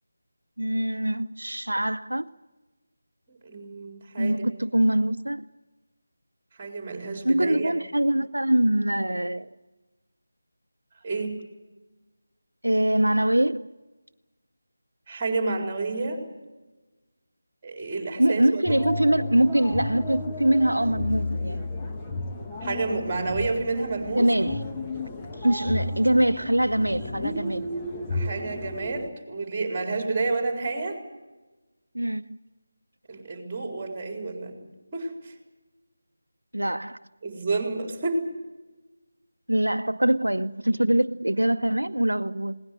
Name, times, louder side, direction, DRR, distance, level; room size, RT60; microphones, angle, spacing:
voice 1, 0.6-2.3 4.2-5.5 7.2-9.5 12.6-13.7 18.2-21.6 24.1-24.6 25.4-27.6 31.9-32.4 36.5-37.0 39.5-42.6, right 1 dB, 80° right, 0.7 m, -23 dB
voice 2, 3.3-4.4 6.6-7.7 11.0-11.4 15.1-16.2 17.6-18.6 22.6-24.3 28.1-31.0 33.1-34.6 34.9-35.3 37.2-38.2, right 3 dB, 20° right, 4.3 m, -30 dB
sound 1, 18.7-29.1, left 2 dB, 10° left, 1.2 m, -33 dB
20.5 x 18.5 x 9.3 m
figure-of-eight pair, 160°, 0 cm